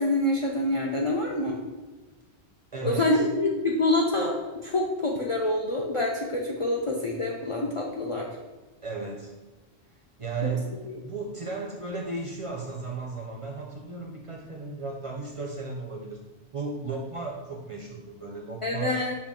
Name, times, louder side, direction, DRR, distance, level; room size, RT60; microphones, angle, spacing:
voice 1, 0.0-1.6 2.8-4.4 4.6-8.3 10.4-10.5 10.8-11.0 18.6-19.1, left 2 dB, 50° left, -1 dB, 0.4 m, -26 dB
voice 2, 2.7-3.2 8.8-9.4 9.9-10.7 11.0-16.2 16.5-18.9, right 4 dB, 45° right, -1 dB, 0.5 m, -35 dB
5.7 x 2.2 x 3.6 m, 1.2 s
omnidirectional pair, 1.1 m